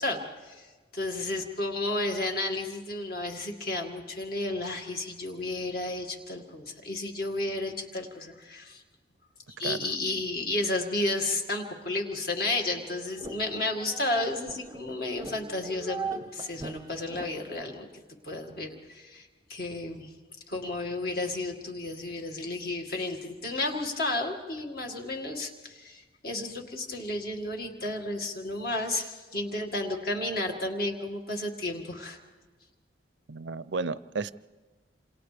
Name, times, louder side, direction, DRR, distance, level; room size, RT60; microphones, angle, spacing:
voice 1, 0.0-8.8 9.6-20.1 20.5-32.2, left 2 dB, 50° left, 2 dB, 2.1 m, -32 dB
sound 1, 12.5-17.6, right 4 dB, 20° right, 0.7 m, -41 dB
voice 2, 33.3-34.3, right 4 dB, 65° right, 16 dB, 0.5 m, -33 dB
27.5 x 27.5 x 3.4 m, 1.3 s
head